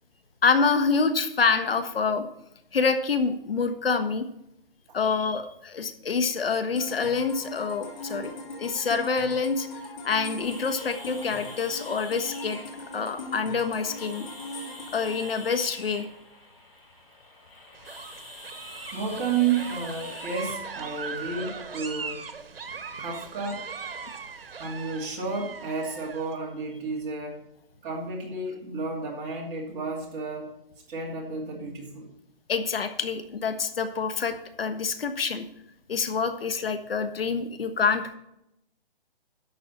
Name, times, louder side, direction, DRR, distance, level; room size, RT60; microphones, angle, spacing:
voice 1, 0.4-2.2 2.7-4.3 4.9-8.3 8.6-9.7 10.0-12.6 12.9-14.3 14.9-16.1 18.7-19.0 32.5-35.4 35.9-38.2, left 5 dB, 80° left, 9 dB, 1.4 m, -26 dB
sound 1, 6.8-16.5, left 1 dB, 50° left, 3.0 m, -40 dB
sound 2, 10.4-21.2, left 1 dB, 20° left, 4.4 m, -46 dB
sound 3, 17.7-26.3, right 5 dB, 75° right, 1.5 m, -39 dB
voice 2, 18.9-22.2 23.0-23.6 24.6-27.4 27.8-30.5 30.9-32.1, right 5 dB, 20° right, -3 dB, 2.5 m, -31 dB
11.5 x 7.6 x 4.1 m, 0.81 s
hypercardioid pair, 160°, 29 cm